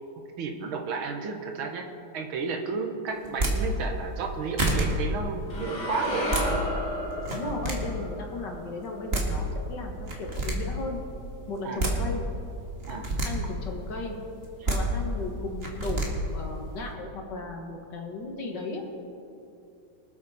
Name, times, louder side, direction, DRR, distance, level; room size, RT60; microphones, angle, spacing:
voice 1, 0.4-6.3 11.6-11.8 12.9-13.1, right 4 dB, 85° right, 4 dB, 2.1 m, -32 dB
sound 1, 3.2-3.5 4.2-4.3 4.6-4.8 6.0-6.5 7.2-7.7 8.8-8.9 9.1-9.3 10.1-10.5 11.5-11.9 12.8-13.3 14.4-14.8 15.6-16.1, right 2 dB, 30° right, 2.0 m, -27 dB
sound 2, 5.5-9.7, left 1 dB, 80° left, 3.0 m, -33 dB
voice 2, 7.3-11.0 11.5-12.2 13.2-14.2 14.7-18.8, left 2 dB, 60° left, 1 dB, 2.1 m, -36 dB
24.5 x 8.3 x 4.2 m, 2.7 s
omnidirectional pair, 2.2 m